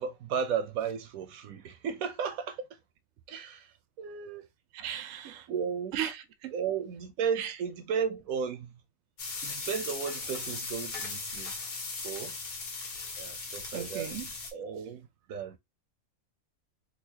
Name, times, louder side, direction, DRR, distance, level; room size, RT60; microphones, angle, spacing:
voice 1, 0.0-2.7 3.3-3.7 4.0-4.5 5.2-6.0 6.5-8.7 9.4-11.6 12.0-12.4 13.2-14.1 14.5-15.6, right 7 dB, 85° right, 1.1 m, -34 dB
voice 2, 4.7-5.5 5.9-6.5 7.4-7.5 13.7-14.3, right 10 dB, 65° right, 0.8 m, -36 dB
sound 1, 9.2-14.5, left 4 dB, 80° left, 1.5 m, -38 dB
4.0 x 2.5 x 2.7 m
omnidirectional pair, 1.5 m